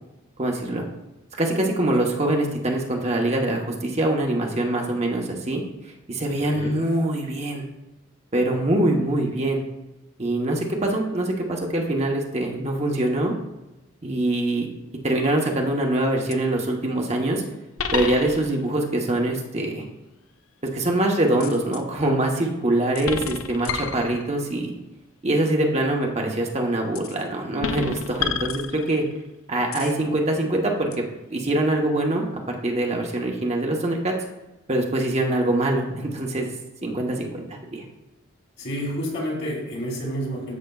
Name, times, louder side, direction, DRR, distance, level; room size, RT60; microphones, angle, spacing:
voice 1, 0.4-0.9 1.4-7.6 8.3-9.6 10.2-13.3 14.0-14.7 15.0-17.4 17.9-19.8 20.7-24.7 25.2-29.0 29.5-31.0 31.3-34.1 34.7-36.5 36.8-37.8, right 1 dB, 30° right, 0 dB, 0.9 m, -24 dB
voice 2, 6.4-6.8 38.6-40.6, equal, 55° left, -3 dB, 2.9 m, -29 dB
sound 1, 15.2-15.6 16.3-16.4 17.8-18.7 21.4-21.8 23.0-24.5 27.0-27.2 27.6-29.2 29.7-30.0 30.9-31.0, left 6 dB, 90° left, 0.6 m, -30 dB
13.0 x 6.3 x 2.3 m, 0.98 s
head